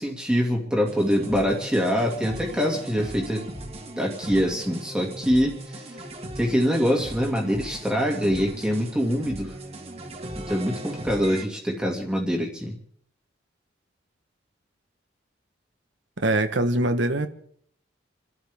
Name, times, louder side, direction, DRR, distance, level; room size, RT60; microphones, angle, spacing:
voice 1, 0.0-3.4 4.0-5.9 6.4-9.5 10.4-12.8, equal, 5° right, 2.3 m, -24 dB
sound 1, 0.9-11.4, right 1 dB, 30° right, 1.9 m, -38 dB
voice 2, 16.2-17.3, right 2 dB, 70° right, 1.2 m, -23 dB
28.5 x 12.5 x 3.6 m
head